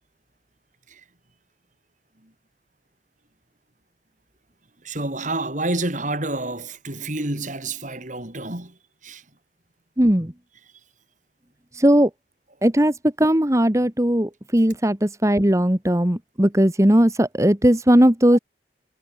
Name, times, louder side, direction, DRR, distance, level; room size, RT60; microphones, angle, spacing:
voice 1, 4.8-9.2, right 2 dB, 45° right, 4.3 m, -29 dB
voice 2, 10.0-10.3 11.7-12.1 12.6-18.4, equal, 15° right, 1.6 m, -18 dB
head